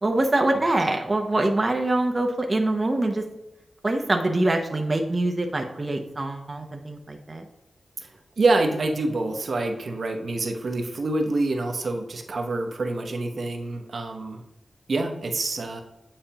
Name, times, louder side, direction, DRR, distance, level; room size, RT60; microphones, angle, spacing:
voice 1, 0.0-3.2 3.8-7.4, right 2 dB, 30° right, 3 dB, 0.7 m, -24 dB
voice 2, 8.4-14.4 14.9-15.8, right 2 dB, 60° right, 3 dB, 0.9 m, -26 dB
8.8 x 4.3 x 2.9 m, 0.96 s
wide cardioid pair, 85°, 0 cm